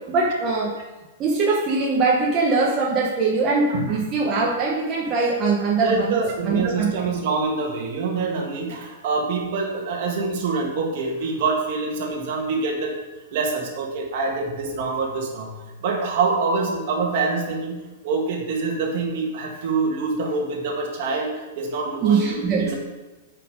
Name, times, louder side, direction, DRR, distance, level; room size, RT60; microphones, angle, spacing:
voice 1, 0.1-0.7 1.2-6.2 6.4-7.1 22.0-22.7, right 4 dB, 25° right, -3 dB, 1.0 m, -22 dB
voice 2, 5.8-12.9 13.3-15.5 15.8-22.7, right 4 dB, 50° right, 0 dB, 1.8 m, -25 dB
8.5 x 5.2 x 5.1 m, 1.1 s
supercardioid pair, 165°, 0 cm